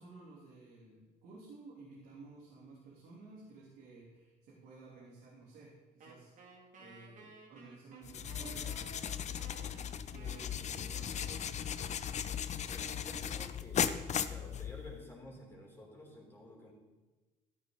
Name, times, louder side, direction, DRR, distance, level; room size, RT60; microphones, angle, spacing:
voice 1, 0.0-9.7 10.1-12.1, right 3 dB, 90° right, -6 dB, 3.3 m, -54 dB
Wind instrument woodwind instrument, 6.0-12.3, right 3 dB, 50° right, 2.7 m, -56 dB
sound 1, 8.0-15.0, left 8 dB, 45° left, 0.6 m, -37 dB
voice 2, 12.7-14.0 14.2-16.7, left 1 dB, 15° left, -3 dB, 3.8 m, -52 dB
13.5 x 11.5 x 4.0 m, 1.2 s
cardioid pair, 110°, 17 cm